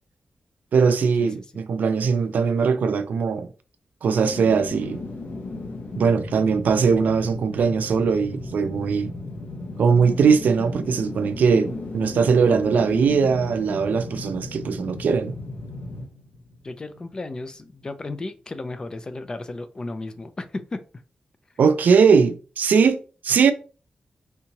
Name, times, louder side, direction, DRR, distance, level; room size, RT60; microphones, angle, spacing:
voice 1, 0.7-3.5 4.0-5.0 6.0-9.1 9.8-15.4 21.6-23.5, right 5 dB, 90° right, 0.4 m, -20 dB
sound 1, 4.2-17.3 17.6-17.7, left 2 dB, 80° left, 0.8 m, -36 dB
voice 2, 16.6-20.8, left 2 dB, 30° left, 0.4 m, -34 dB
3.5 x 2.8 x 2.8 m
wide cardioid pair, 165°, 3 cm